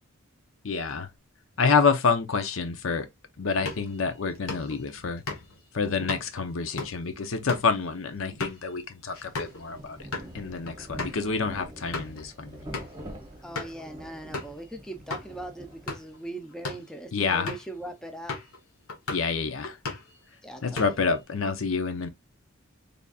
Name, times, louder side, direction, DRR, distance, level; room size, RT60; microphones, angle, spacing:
voice 1, 0.6-1.1 1.6-3.1 3.4-5.2 5.7-10.0 10.3-12.6 17.1-17.5 19.1-19.8 20.6-22.1, left 5 dB, 65° left, 0.7 m, -27 dB
sound 1, 3.5-9.6 10.0-10.3 10.7-10.8 11.0-11.2 11.7-12.2 12.7-13.0 13.5-13.8 14.3-14.6 15.1-15.3 15.7-16.2 16.5-16.9 17.5-17.7 18.3-18.6 18.9-19.3 19.6-20.2 20.5-21.2, left 3 dB, 80° left, 1.3 m, -37 dB
Rain, 9.1-16.3, right 1 dB, 20° right, 0.9 m, -45 dB
voice 2, 13.4-18.4 20.4-21.1, right 1 dB, 5° left, 0.5 m, -40 dB
4.0 x 3.4 x 2.4 m
head